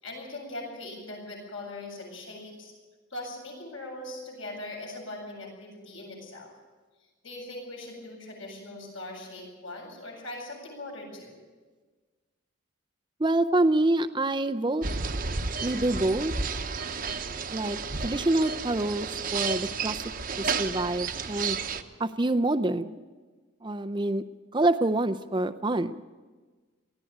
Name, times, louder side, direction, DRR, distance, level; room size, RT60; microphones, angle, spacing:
voice 1, 0.0-2.7 3.1-6.5 7.2-11.4, left 2 dB, 70° left, -1 dB, 8.0 m, -40 dB
voice 2, 13.2-14.8 15.6-16.3 17.5-20.0 20.4-21.6 22.0-23.0 23.6-24.2 24.5-26.0, right 2 dB, 20° right, 10 dB, 0.5 m, -26 dB
sound 1, 14.8-21.8, right 5 dB, 45° right, 0.9 m, -32 dB
19.5 x 14.5 x 9.1 m, 1.4 s
head